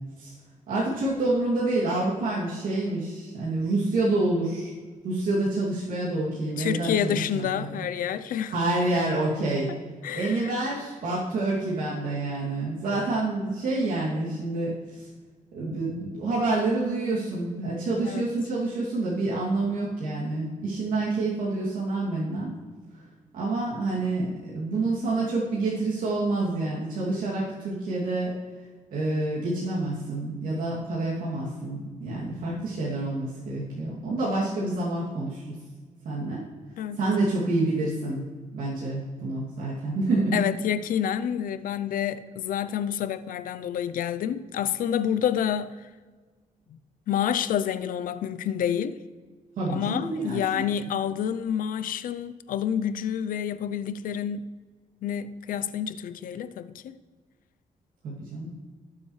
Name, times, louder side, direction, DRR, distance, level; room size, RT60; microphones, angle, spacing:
voice 1, 0.7-4.7 5.0-7.1 7.5-7.8 8.5-9.7 10.1-15.1 15.5-22.5 23.3-28.3 28.9-35.6 36.0-36.4 37.0-38.2 38.5-40.4 49.6-50.4 58.0-58.5, right 2 dB, 85° right, 2.6 m, -28 dB
voice 2, 6.6-8.5 10.0-10.5 18.0-18.3 36.8-37.0 40.3-45.8 46.7-46.8 47.1-49.0 49.7-54.6 55.0-57.0, left 9 dB, 85° left, 0.5 m, -28 dB
18.0 x 7.4 x 3.2 m
cardioid pair, 130°, 14 cm